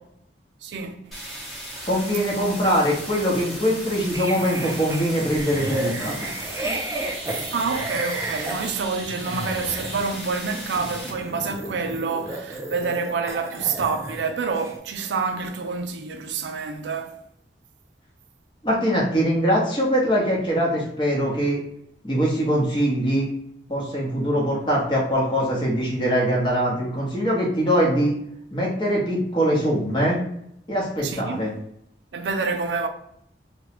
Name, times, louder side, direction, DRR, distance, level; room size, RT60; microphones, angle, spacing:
voice 1, 0.6-1.1 7.5-17.2 31.0-31.4 32.1-32.9, right 4 dB, 85° right, 0.4 m, -27 dB
sound 1, 1.1-11.1, right 1 dB, ahead, 0.9 m, -37 dB
voice 2, 1.8-6.3 18.6-21.6 22.0-23.3 23.7-28.2 28.5-30.2 30.7-31.5, equal, 25° left, 0.9 m, -22 dB
sound 2, 4.1-14.3 14.5-14.8, right 2 dB, 15° right, 0.4 m, -33 dB
3.0 x 2.2 x 2.9 m
head